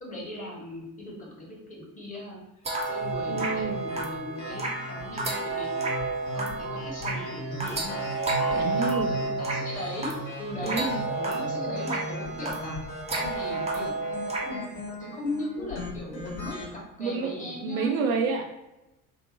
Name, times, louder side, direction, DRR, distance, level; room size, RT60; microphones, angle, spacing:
voice 1, 0.0-2.4 2.9-6.0 6.3-8.0 8.5-10.8 11.2-12.8 13.1-13.9 14.3-14.7 15.0-17.9, left 1 dB, 20° left, -2 dB, 1.0 m, -38 dB
sound 1, 2.6-14.6, right 3 dB, 15° right, 0.6 m, -31 dB
sound 2, 2.9-16.7, equal, 55° left, 1.1 m, -37 dB
voice 2, 3.3-3.8 8.5-9.3 10.6-11.0 15.0-15.2 16.2-16.3 17.0-18.5, right 4 dB, 75° right, 3 dB, 0.5 m, -29 dB
2.7 x 2.1 x 2.8 m, 0.95 s
figure-of-eight pair, 60°, 42 cm